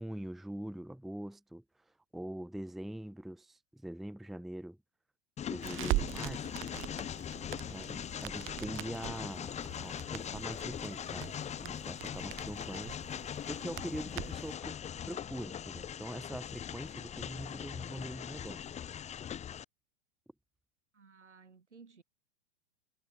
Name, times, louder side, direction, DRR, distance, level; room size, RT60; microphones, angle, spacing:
voice 1, 0.0-1.6 2.1-4.8 5.4-6.5 7.7-13.0 13.5-14.8 15.1-18.7, right 1 dB, ahead, 0.7 m, -43 dB
Train, 5.4-19.6, left 9 dB, 20° left, 1.6 m, -41 dB
Crackle, 5.6-14.5, right 20 dB, 35° right, 2.9 m, -41 dB
voice 2, 7.7-8.1 20.9-22.0, right 5 dB, 85° right, 7.5 m, -57 dB
hypercardioid pair, 105°, 34 cm